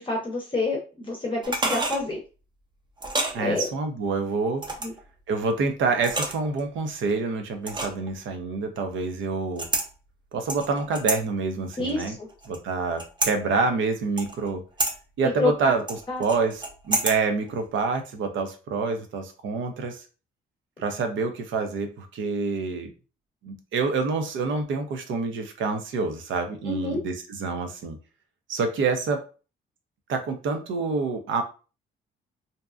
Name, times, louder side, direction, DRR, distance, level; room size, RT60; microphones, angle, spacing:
voice 1, 0.0-2.2 3.4-3.7 4.8-4.9 11.8-12.3 15.4-15.7 16.1-16.2 26.7-27.0, left 2 dB, 25° left, -1 dB, 0.7 m, -28 dB
sound 1, 1.4-2.0 3.0-3.4 4.6-5.0 6.0-6.6 7.7-8.1 9.6-9.9 10.5-11.2 11.7-12.6 13.0-13.3 14.2-14.5 14.8-14.9 15.9-17.2 17.5-17.6, right 2 dB, 25° right, 0.6 m, -28 dB
voice 2, 3.3-4.6 5.3-9.7 10.3-12.2 12.5-14.6 15.2-20.0 20.8-22.9 23.4-28.0 28.5-29.2 30.1-31.4, right 4 dB, 75° right, 6 dB, 0.6 m, -27 dB
2.7 x 2.2 x 2.4 m, 0.34 s
cardioid pair, 90°, 20 cm